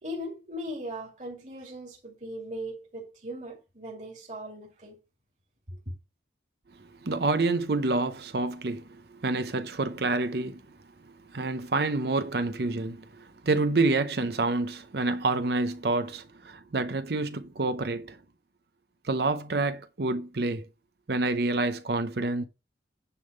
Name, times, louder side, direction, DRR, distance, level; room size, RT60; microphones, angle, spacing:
voice 1, 0.0-5.0 5.7-5.8, equal, 40° right, 2.5 m, -39 dB
voice 2, 7.0-10.6 11.0-18.2 19.0-20.7 21.1-22.4, right 3 dB, 60° right, 0.7 m, -28 dB
9.7 x 3.6 x 6.6 m
head